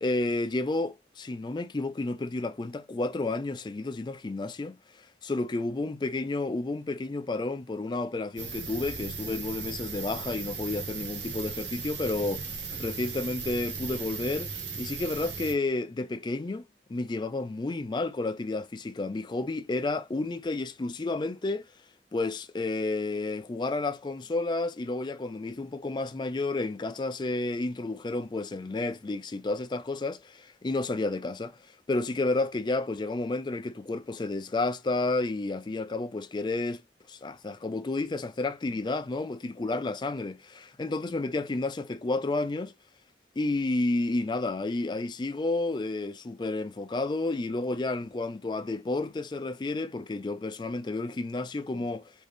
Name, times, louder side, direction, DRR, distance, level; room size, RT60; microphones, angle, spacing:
voice 1, 0.0-4.8 5.2-21.7 22.1-31.6 31.9-36.8 37.1-42.7 43.4-52.1, left 2 dB, 25° left, 0.3 m, -31 dB
sound 1, 8.4-15.5, right 4 dB, 85° right, 0.9 m, -37 dB
3.7 x 2.6 x 3.4 m
head